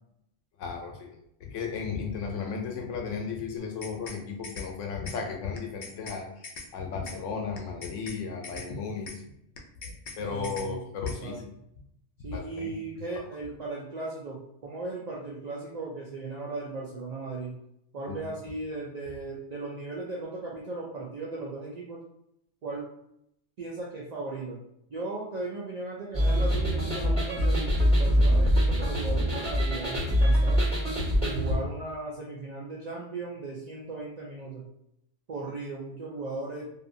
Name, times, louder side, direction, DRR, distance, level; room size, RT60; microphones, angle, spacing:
voice 1, 0.6-9.1 9.6-11.5 12.2-13.2 18.1-18.2, left 5 dB, 85° left, 2 dB, 1.0 m, -35 dB
sound 1, 3.6-4.2 4.4-4.7 5.1-5.2 5.6-6.2 6.4-6.7 7.1-7.2 7.6-8.2 8.4-8.7 9.1-9.2 9.6-10.2 10.4-10.7 11.1-11.2, left 3 dB, 60° left, 0.5 m, -42 dB
voice 2, 10.2-10.8 11.2-11.4 12.2-17.5 17.9-22.0 22.6-22.9 23.6-24.6 24.9-30.6 31.2-34.6 35.3-36.8, right 3 dB, 60° right, -4 dB, 0.4 m, -37 dB
sound 2, 26.1-31.6, equal, 5° left, 1.3 m, -24 dB
2.7 x 2.5 x 2.5 m, 0.76 s
omnidirectional pair, 1.3 m